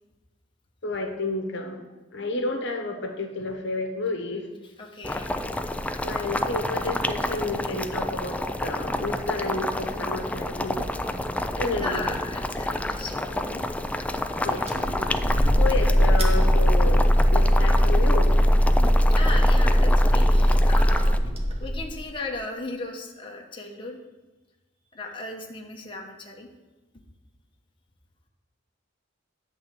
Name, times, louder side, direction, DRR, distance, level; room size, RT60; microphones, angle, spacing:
voice 1, 0.8-1.8 2.1-4.4 6.0-10.9 11.6-12.1 12.7-12.8 14.4-14.6 15.6-17.0 17.3-18.4, left 2 dB, 65° left, 4 dB, 1.1 m, -31 dB
voice 2, 4.6-5.7 6.8-6.9 11.7-13.7 15.5-15.8 18.8-21.3 21.6-24.0 24.9-26.5, left 2 dB, 25° left, 0 dB, 1.0 m, -37 dB
Boiling, 5.0-21.2, left 1 dB, 5° left, 0.3 m, -29 dB
sound 1, 14.7-22.0, equal, 30° right, 1.1 m, -19 dB
10.0 x 4.0 x 7.3 m, 1.1 s
head